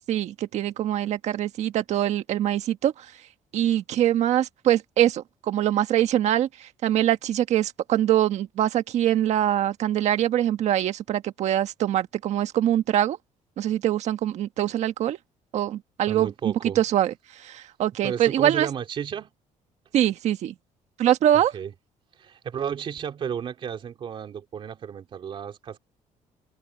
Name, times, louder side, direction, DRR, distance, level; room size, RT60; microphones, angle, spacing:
voice 1, 0.1-3.1 3.5-13.2 13.6-15.2 15.5-18.7 19.9-20.5 21.0-21.5, right 12 dB, 60° right, 1.5 m, -23 dB
voice 2, 16.1-16.8 18.0-19.3 21.3-21.7 22.2-25.8, right 8 dB, 40° right, 3.1 m, -33 dB
cardioid pair, 165°, 13 cm